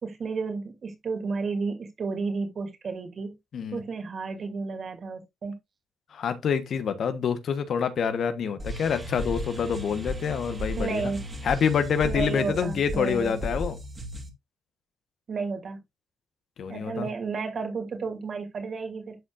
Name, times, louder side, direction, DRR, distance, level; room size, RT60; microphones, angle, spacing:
voice 1, 0.0-3.3 3.7-5.5 10.8-11.2 12.0-13.3 15.3-15.8 16.7-19.2, right 4 dB, 50° right, 2.6 m, -32 dB
voice 2, 6.1-11.1 11.4-13.8 16.6-17.1, left 7 dB, 60° left, 1.2 m, -27 dB
sound 1, 8.6-14.3, left 1 dB, 25° right, 2.4 m, -35 dB
12.5 x 4.3 x 2.5 m
cardioid pair, 90°, 0 cm